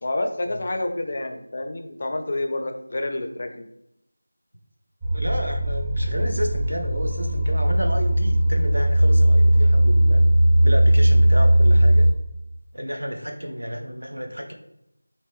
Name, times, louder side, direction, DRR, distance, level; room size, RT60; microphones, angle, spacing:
voice 1, 0.0-3.7, left 2 dB, 35° left, 6 dB, 0.4 m, -28 dB
sound 1, 5.0-12.1, right 1 dB, 20° right, 0.8 m, -18 dB
voice 2, 5.1-10.2 10.6-12.1 12.7-14.5, equal, 80° right, 4 dB, 0.7 m, -31 dB
3.2 x 2.5 x 3.5 m, 0.81 s
figure-of-eight pair, 170°, 0 cm